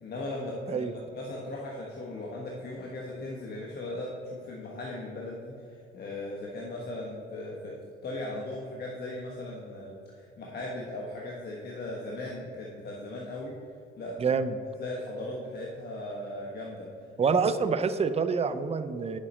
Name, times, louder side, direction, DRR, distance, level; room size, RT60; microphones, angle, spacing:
voice 1, 0.0-13.6 14.0-14.3 14.8-16.9, left 1 dB, 55° left, -3 dB, 1.3 m, -38 dB
voice 2, 14.2-14.6 17.2-19.2, right 5 dB, 30° right, 11 dB, 0.6 m, -27 dB
9.6 x 7.4 x 4.3 m, 2.7 s
cardioid pair, 90°, 20 cm